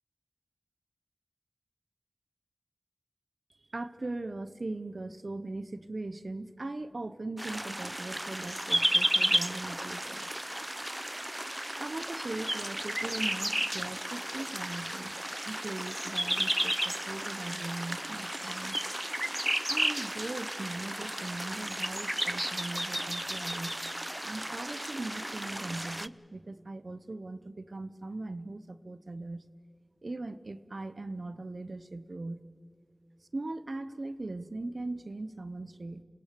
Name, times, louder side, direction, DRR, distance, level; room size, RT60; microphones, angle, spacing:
voice 1, 3.7-10.3 11.8-15.2 15.5-18.8 19.7-23.8 24.2-29.4 30.0-32.4 33.3-36.0, right 2 dB, 85° right, 13 dB, 0.8 m, -39 dB
sound 1, 7.4-26.1, right 1 dB, 20° right, 0.5 m, -33 dB
27.0 x 17.5 x 6.8 m, 2.2 s
wide cardioid pair, 40°, 0 cm